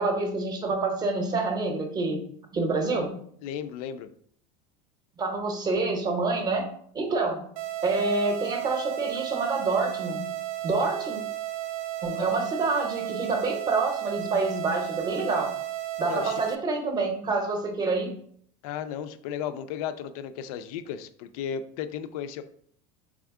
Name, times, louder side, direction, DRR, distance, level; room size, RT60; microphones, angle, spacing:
voice 1, 0.0-2.2 2.5-3.2 5.2-6.7 6.9-7.4 7.8-10.3 10.6-11.2 12.0-15.5 16.0-18.1, right 3 dB, 20° right, 5 dB, 0.6 m, -27 dB
voice 2, 3.4-4.1 16.1-16.4 18.6-22.4, left 8 dB, 85° left, 11 dB, 0.4 m, -34 dB
sound 1, 7.6-16.6, right 13 dB, 85° right, 0.4 m, -34 dB
3.6 x 3.4 x 3.5 m, 0.63 s
cardioid pair, 155°, 18 cm